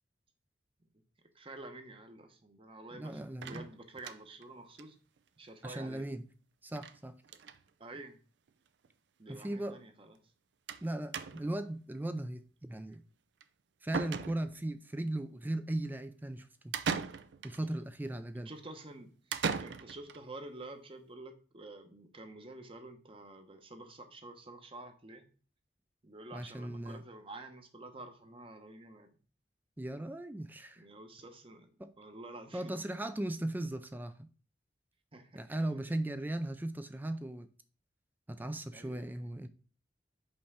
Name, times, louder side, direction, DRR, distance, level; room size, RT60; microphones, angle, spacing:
voice 1, 1.3-5.0 5.4-6.0 7.8-8.2 9.2-10.2 17.6-17.8 18.5-25.3 26.0-29.1 30.8-31.7 32.0-32.7 35.1-35.8 38.7-39.3, right 2 dB, 30° right, 0.9 m, -49 dB
voice 2, 2.9-3.6 5.6-6.2 6.6-7.2 9.3-9.8 10.8-13.0 13.8-16.7 17.4-18.5 26.3-27.0 29.8-30.8 31.8-31.9 32.5-34.3 35.3-37.5 38.3-39.5, right 1 dB, 10° right, 0.4 m, -37 dB
sound 1, 3.4-4.4 4.8-4.9 5.2-5.3 5.5-5.6 6.8-7.0 7.2-7.6 8.5-8.6 8.8-8.9 10.7-10.9 11.1-11.6 13.4-13.5 13.9-14.7 16.7-17.6 19.3-20.2, right 5 dB, 75° right, 0.5 m, -38 dB
5.4 x 3.5 x 5.6 m
head